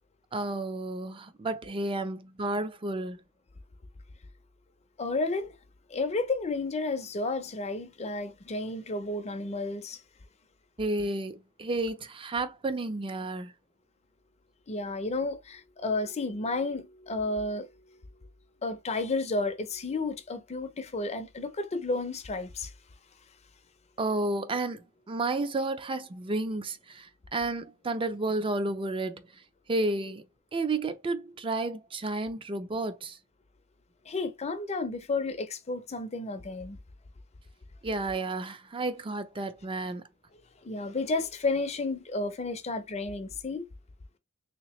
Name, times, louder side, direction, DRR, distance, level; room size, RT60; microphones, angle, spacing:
voice 1, 0.3-3.2 10.8-13.5 24.0-29.3 29.7-30.2 30.5-33.2 37.8-40.0, right 2 dB, 25° right, 0.4 m, -31 dB
voice 2, 5.0-5.6 5.9-10.0 14.7-18.0 18.6-22.7 34.0-36.8 40.6-43.6, left 3 dB, 30° left, 0.5 m, -32 dB
3.3 x 2.9 x 3.0 m
head